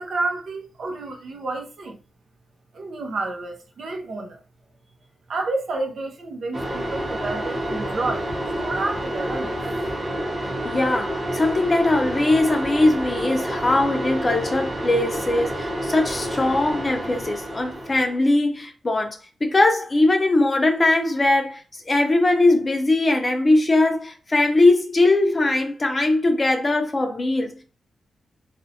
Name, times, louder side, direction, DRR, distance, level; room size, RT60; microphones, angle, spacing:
voice 1, 0.0-2.0 2.7-4.4 5.3-8.3 8.6-9.6, right 2 dB, 65° right, 0.6 m, -30 dB
sound 1, 6.5-18.2, right 1 dB, 30° right, 0.9 m, -29 dB
voice 2, 10.6-21.6 21.9-27.6, left 2 dB, 30° left, 0.5 m, -20 dB
2.5 x 2.1 x 2.7 m
wide cardioid pair, 110°, 0 cm